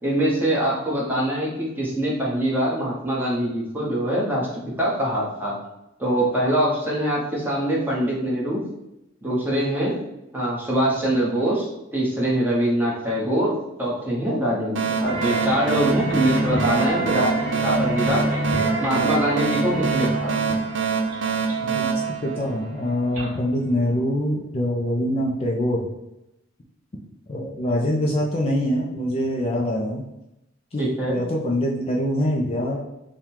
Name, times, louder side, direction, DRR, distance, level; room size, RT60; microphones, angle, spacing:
voice 1, 0.0-5.5 6.0-8.6 9.2-10.0 10.3-17.3 17.6-18.2 18.8-20.3 30.8-31.2, right 1 dB, 10° right, -5 dB, 1.1 m, -23 dB
sound 1, 14.8-23.1, right 5 dB, 70° right, 0.6 m, -25 dB
sound 2, 15.0-24.0, equal, 40° right, 1.5 m, -29 dB
voice 2, 21.6-25.9 27.3-30.0 30.7-32.8, equal, 30° left, -2 dB, 0.5 m, -24 dB
3.6 x 2.2 x 4.5 m, 0.90 s
head